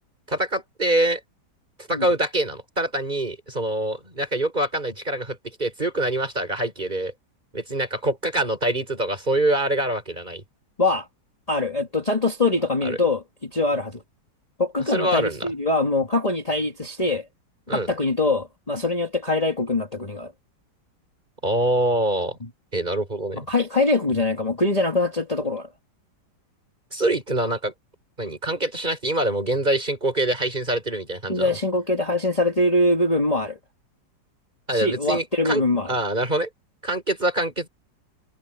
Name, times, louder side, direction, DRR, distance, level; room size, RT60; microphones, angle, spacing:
voice 1, 0.3-1.2 1.9-7.1 7.5-10.4 12.8-13.0 14.9-15.5 17.7-17.9 21.4-22.4 22.7-23.4 26.9-27.7 28.2-31.5 34.7-36.5 36.8-37.7, right 1 dB, 25° right, 5.0 m, -25 dB
voice 2, 11.5-14.0 14.6-17.3 17.7-20.3 23.3-25.7 31.3-33.6 34.7-35.9, left 2 dB, 20° left, 2.0 m, -23 dB
omnidirectional pair, 2.0 m